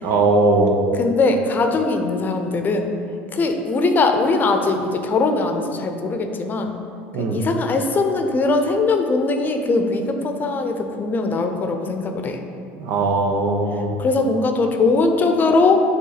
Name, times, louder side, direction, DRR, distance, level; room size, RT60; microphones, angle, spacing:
voice 1, 0.0-0.8 7.1-7.4 12.8-14.0, right 3 dB, 65° right, 3 dB, 0.9 m, -19 dB
voice 2, 1.0-2.9 3.3-6.8 7.2-12.4 14.0-15.8, left 3 dB, 35° left, 5 dB, 0.7 m, -20 dB
8.3 x 3.5 x 4.0 m, 2.7 s
hypercardioid pair, 85°, 6 cm